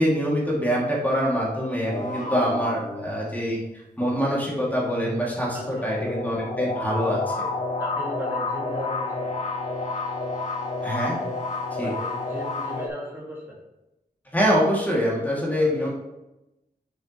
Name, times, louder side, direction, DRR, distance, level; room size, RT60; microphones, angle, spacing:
voice 1, 0.0-3.6 4.0-7.4 10.8-11.2 11.7-11.9 14.3-15.9, equal, 10° left, -4 dB, 2.4 m, -24 dB
sound 1, 1.9-3.5 4.8-12.9, left 3 dB, 50° left, 1.4 m, -30 dB
voice 2, 5.5-6.1 7.8-9.4 11.8-13.6 15.6-15.9, left 1 dB, 15° right, -5 dB, 2.2 m, -37 dB
7.0 x 6.6 x 3.1 m, 0.95 s
wide cardioid pair, 70°, 16 cm